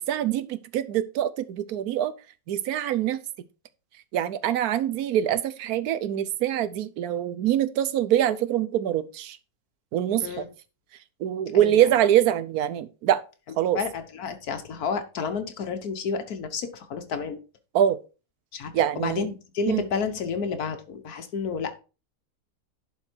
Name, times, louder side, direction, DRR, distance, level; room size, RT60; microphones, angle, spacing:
voice 1, 0.1-2.1 2.5-3.2 4.1-9.4 9.9-10.4 11.2-13.2 13.6-13.8 17.7-18.0 18.7-19.3 19.7-19.8, right 11 dB, 80° right, 1.2 m, -24 dB
voice 2, 11.5-11.9 13.7-17.4 18.5-21.8, left 5 dB, 80° left, 1.5 m, -31 dB
11.0 x 4.5 x 4.5 m
omnidirectional pair, 1.6 m